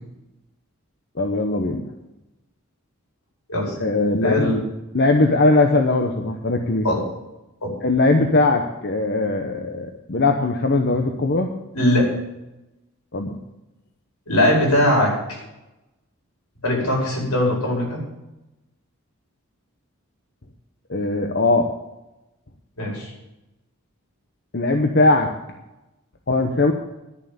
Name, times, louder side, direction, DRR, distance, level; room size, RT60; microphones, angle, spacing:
voice 1, 1.2-1.8 3.8-4.6 4.9-6.9 7.8-11.5 13.1-13.3 20.9-21.7 24.5-25.3 26.3-26.7, left 2 dB, 50° left, 4 dB, 0.9 m, -20 dB
voice 2, 4.2-4.6 6.8-7.0 7.6-7.7 11.7-12.1 14.3-15.1 16.6-18.0 22.8-23.1, left 1 dB, 85° left, -1 dB, 4.9 m, -20 dB
11.0 x 7.0 x 8.7 m, 0.96 s
head